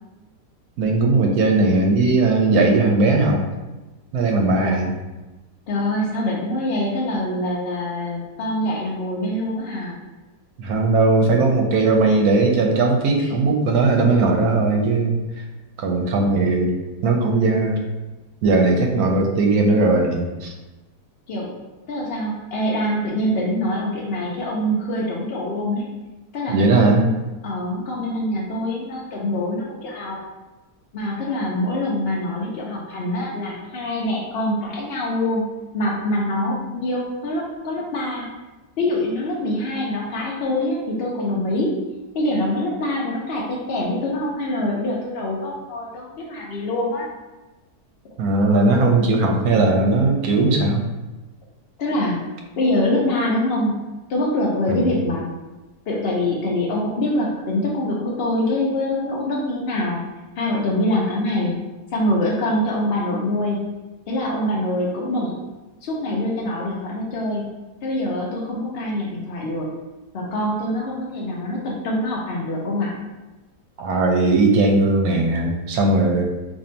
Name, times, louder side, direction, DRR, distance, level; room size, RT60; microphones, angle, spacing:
voice 1, 0.8-3.4 4.1-4.9 10.6-15.4 15.8-16.7 17.0-17.8 18.4-20.5 26.5-27.0 48.2-50.8 54.7-54.9 73.8-76.2, right 3 dB, 75° right, 2 dB, 1.0 m, -18 dB
voice 2, 4.5-4.9 5.7-10.0 13.2-13.3 21.3-21.5 21.9-25.9 26.3-27.2 27.4-30.2 30.9-35.4 35.7-38.3 38.8-41.7 42.1-47.1 51.8-52.2 52.6-53.8 54.1-55.3 55.9-60.0 60.4-61.6 61.9-63.6 64.1-65.5 65.8-67.5 67.8-69.7 70.1-72.9, left 1 dB, 80° left, -3 dB, 0.5 m, -24 dB
2.6 x 2.6 x 4.3 m, 1.1 s
omnidirectional pair, 1.7 m